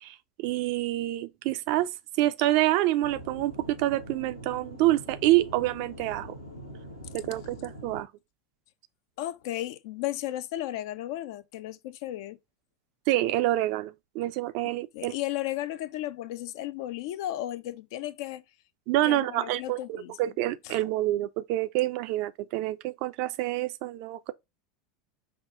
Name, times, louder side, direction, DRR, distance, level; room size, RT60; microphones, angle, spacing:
voice 1, 0.0-1.9 2.2-6.3 7.1-8.1 13.1-15.1 18.9-24.3, right 16 dB, 50° right, 0.4 m, -27 dB
Aircraft / Engine, 3.0-8.0, equal, 85° left, 0.9 m, -44 dB
voice 2, 9.2-12.4 14.6-18.4 19.0-20.2 20.6-20.8, left 14 dB, 55° left, 0.5 m, -34 dB
5.6 x 2.4 x 3.6 m
figure-of-eight pair, 80°, 2 cm